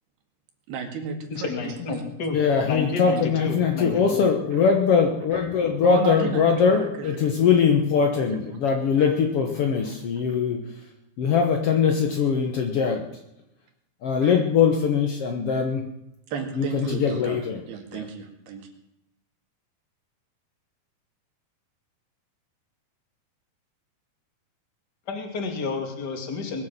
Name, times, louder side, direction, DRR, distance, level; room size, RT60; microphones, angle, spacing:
voice 1, 0.7-2.0 5.8-7.3 8.3-8.4 14.2-14.3 16.3-17.4 17.7-18.6, right 6 dB, 80° right, 4 dB, 4.0 m, -33 dB
voice 2, 1.3-2.4 2.7-4.3 25.1-26.7, left 4 dB, 30° left, 3 dB, 2.3 m, -30 dB
voice 3, 2.3-10.7 11.2-13.1 14.0-15.9 16.5-17.6 17.9-18.1, left 6 dB, 80° left, 4 dB, 1.3 m, -22 dB
21.5 x 8.0 x 7.4 m, 0.84 s
omnidirectional pair, 4.5 m